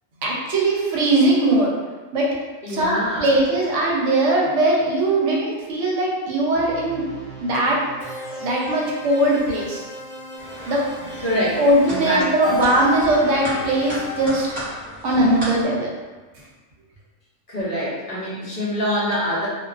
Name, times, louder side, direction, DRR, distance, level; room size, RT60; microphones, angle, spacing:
voice 1, 0.2-1.7 2.1-2.3 2.7-7.0 7.4-7.8 8.4-9.8 10.7-10.8 11.6-14.5 15.0-15.9, right 1 dB, 70° right, -3 dB, 0.9 m, -20 dB
voice 2, 2.6-3.3 11.2-11.6 11.9-12.3 17.5-19.5, equal, 50° left, -8 dB, 0.8 m, -24 dB
sound 1, 6.5-14.3, left 2 dB, ahead, 1.0 m, -35 dB
sound 2, 10.4-15.7, right 1 dB, 25° right, 1.1 m, -34 dB
2.4 x 2.2 x 2.3 m, 1.3 s
omnidirectional pair, 1.4 m